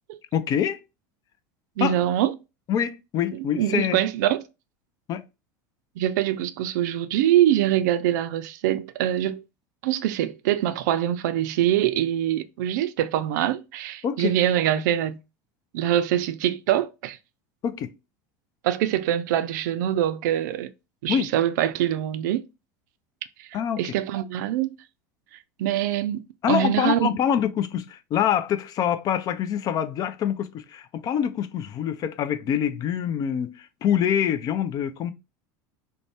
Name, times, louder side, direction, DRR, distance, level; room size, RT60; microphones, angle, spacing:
voice 1, 0.3-0.8 1.8-2.0 2.7-4.0 5.1-5.2 14.0-14.3 17.6-17.9 21.1-21.3 23.5-23.8 26.4-35.1, left 9 dB, 40° left, 0.4 m, -25 dB
voice 2, 1.8-2.3 3.3-4.4 6.0-9.4 9.8-15.2 15.7-17.2 18.6-20.7 21.0-22.5 23.8-24.7 25.6-26.2 26.5-27.2, right 12 dB, 75° right, 0.4 m, -24 dB
2.6 x 2.1 x 3.2 m
supercardioid pair, 110°, 10 cm